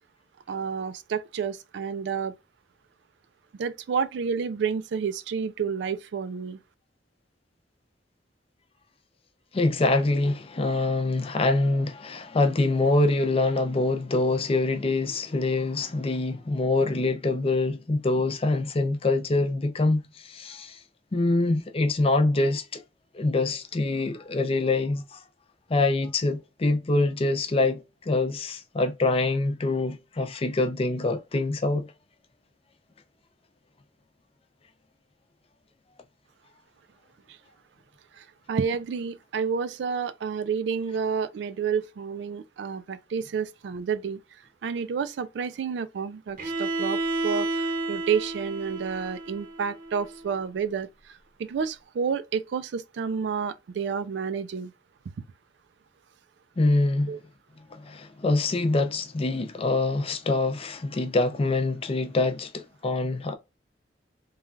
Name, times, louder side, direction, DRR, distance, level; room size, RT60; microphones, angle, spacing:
voice 1, 0.5-2.3 3.6-6.6 38.1-44.2 44.6-50.9 51.4-54.7 57.1-57.2, right 6 dB, 70° right, 0.3 m, -30 dB
voice 2, 9.5-20.8 21.1-22.8 23.1-25.2 25.7-31.9 56.6-57.2 57.7-63.3, left 2 dB, 35° left, 0.5 m, -25 dB
Bowed string instrument, 46.4-50.3, right 2 dB, 50° right, 0.7 m, -31 dB
3.1 x 2.3 x 2.3 m
head